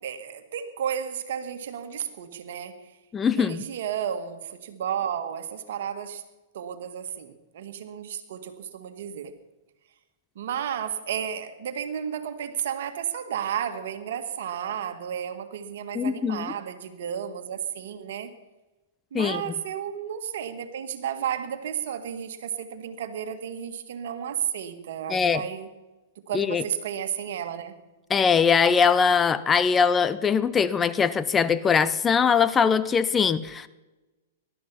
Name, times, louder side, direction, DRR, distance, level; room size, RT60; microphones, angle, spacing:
voice 1, 0.0-2.9 3.4-6.2 6.5-9.3 10.4-18.3 19.1-25.7 26.2-27.7, right 9 dB, 65° right, 8 dB, 1.9 m, -32 dB
voice 2, 3.1-3.6 15.9-16.5 19.1-19.4 25.1-25.4 26.3-26.6 28.1-33.7, left 6 dB, 20° left, 14 dB, 0.7 m, -22 dB
19.5 x 12.5 x 5.7 m, 1.1 s
hypercardioid pair, 110°, 0 cm